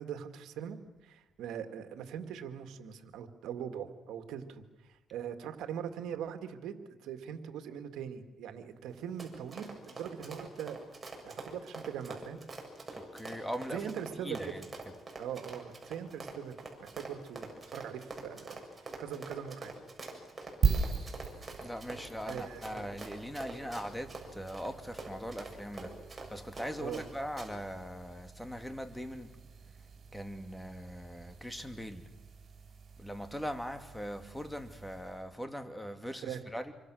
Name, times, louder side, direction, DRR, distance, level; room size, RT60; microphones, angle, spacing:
voice 1, 0.0-10.8 11.2-12.4 13.7-14.5 15.2-18.6 19.0-19.7 22.3-22.9 26.8-27.0 36.2-36.4, right 8 dB, 85° right, 7 dB, 2.1 m, -41 dB
Run, 8.9-27.1 27.4-27.5, right 3 dB, 20° right, 6.9 m, -45 dB
voice 2, 12.9-13.8 14.2-14.6 21.6-25.9 26.3-29.3 30.1-32.0 33.0-36.6, equal, 5° left, 7 dB, 2.4 m, -40 dB
sound 1, 20.6-35.4, right 6 dB, 50° right, 5.6 m, -40 dB
27.0 x 24.0 x 6.4 m, 1.1 s
cardioid pair, 90°, 0 cm